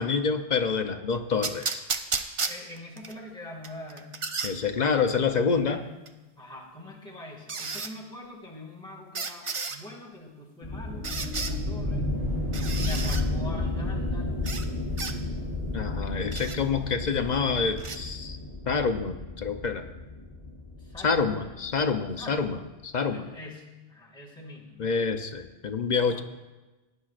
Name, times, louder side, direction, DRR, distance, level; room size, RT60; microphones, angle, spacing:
voice 1, 0.0-1.8 4.4-5.8 15.7-18.4 18.7-19.9 21.0-22.6 22.8-23.3 24.8-26.2, left 5 dB, 50° left, 7 dB, 0.7 m, -27 dB
sound 1, 1.4-3.1 3.6-4.5 6.1-6.2 7.5-7.9 9.1-9.8 11.0-11.5 12.5-13.2 14.4-14.7 15.0-15.1 16.3-16.6 17.8-18.0, right 4 dB, 40° right, 0.5 m, -32 dB
voice 2, 2.5-4.1 5.7-5.9 6.4-12.1 12.8-14.4 20.8-21.6 22.2-22.6 23.1-23.6 23.9-24.8 26.1-26.2, left 1 dB, 5° left, -3 dB, 1.8 m, -43 dB
sound 2, 10.6-22.1, left 2 dB, 65° right, 4.1 m, -32 dB
18.0 x 9.9 x 2.4 m, 1.1 s
omnidirectional pair, 1.1 m